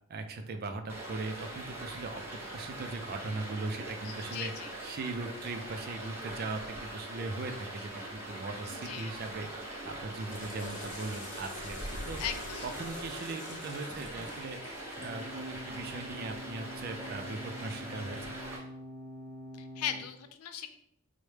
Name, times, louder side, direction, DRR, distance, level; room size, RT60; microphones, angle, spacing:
voice 1, 0.1-2.2 2.5-4.5 4.8-9.5 9.8-12.2 12.6-14.6 15.0-18.4, right 3 dB, 45° right, 7 dB, 0.3 m, -39 dB
Stream, 0.9-18.6, right 1 dB, 10° right, 0.6 m, -42 dB
voice 2, 4.0-4.7 8.7-9.2 12.2-12.7 19.6-20.7, left 9 dB, 80° left, 8 dB, 0.4 m, -38 dB
Water / Toilet flush, 10.1-15.3, left 2 dB, 50° left, 0.8 m, -47 dB
sound 1, 15.0-20.0, equal, 15° left, 0.9 m, -45 dB
4.5 x 2.1 x 3.2 m, 0.70 s
head